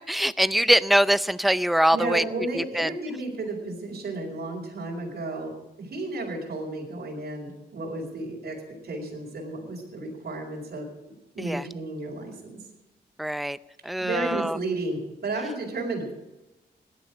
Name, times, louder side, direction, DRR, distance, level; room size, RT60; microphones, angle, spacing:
voice 1, 0.1-2.2 2.5-2.9 11.4-11.7 13.2-13.6 13.8-14.6, equal, ahead, 15 dB, 0.5 m, -23 dB
voice 2, 1.9-12.6 14.0-16.1, right 2 dB, 65° right, -2 dB, 4.6 m, -33 dB
17.5 x 11.5 x 5.0 m, 1.0 s
cardioid pair, 90°, 18 cm